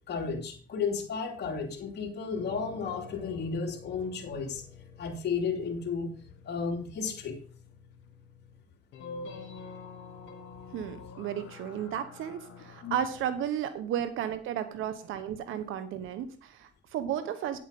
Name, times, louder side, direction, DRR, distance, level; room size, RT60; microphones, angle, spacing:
voice 1, 0.1-4.6 5.0-6.1 6.4-7.4 12.8-13.0, left 5 dB, 55° left, -2 dB, 3.0 m, -33 dB
sound 1, 2.3-13.5, left 4 dB, 85° left, 2.4 m, -48 dB
voice 2, 10.7-17.6, right 9 dB, 85° right, 11 dB, 1.1 m, -33 dB
9.6 x 7.4 x 5.2 m, 0.41 s
cardioid pair, 90°, 20 cm